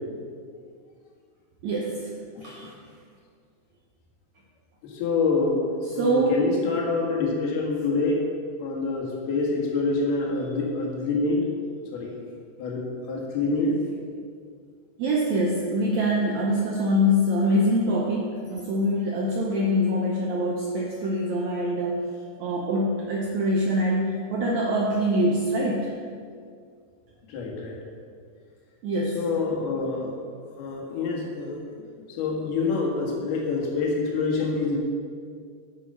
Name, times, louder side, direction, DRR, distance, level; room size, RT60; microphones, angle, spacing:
voice 1, 1.6-2.1 2.4-2.6 5.9-6.4 15.0-22.0 22.4-25.9 28.8-29.2, equal, 85° right, -1 dB, 1.6 m, -24 dB
voice 2, 2.4-2.7 4.8-5.6 5.9-8.2 8.6-11.4 11.9-12.1 12.6-13.8 27.3-27.8 29.1-30.2 30.6-31.6 32.1-34.8, left 3 dB, 85° left, -2 dB, 3.6 m, -26 dB
8.6 x 8.1 x 5.5 m, 2.1 s
omnidirectional pair, 4.4 m